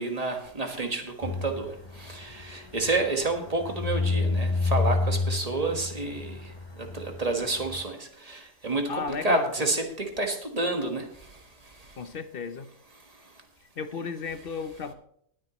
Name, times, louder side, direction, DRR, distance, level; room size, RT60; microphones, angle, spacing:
voice 1, 0.0-1.7 2.0-6.5 6.8-11.1, right 2 dB, 30° right, 4 dB, 1.6 m, -29 dB
sound 1, 1.2-7.8, left 3 dB, 25° left, 0.8 m, -30 dB
voice 2, 8.9-9.7 12.0-12.7 13.8-14.9, left 5 dB, 55° left, 11 dB, 1.0 m, -34 dB
20.0 x 9.0 x 3.1 m, 0.70 s
omnidirectional pair, 1.2 m